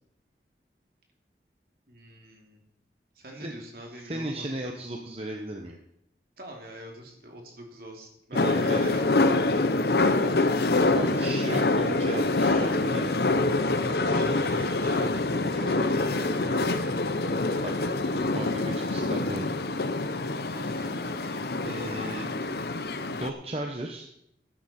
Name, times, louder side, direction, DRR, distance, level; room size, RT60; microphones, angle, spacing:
voice 1, 1.9-2.6 3.1-4.6 6.4-9.7 13.7-17.3 20.5-21.3, right 1 dB, 55° right, 1 dB, 2.8 m, -44 dB
voice 2, 3.9-5.8 8.4-9.0 10.9-13.2 17.6-17.7 18.3-19.5 21.6-22.4 23.2-24.1, right 1 dB, 35° right, 2 dB, 1.0 m, -35 dB
sound 1, 8.3-23.3, left 2 dB, 65° left, 0.8 m, -26 dB
14.0 x 10.5 x 4.4 m, 0.77 s
head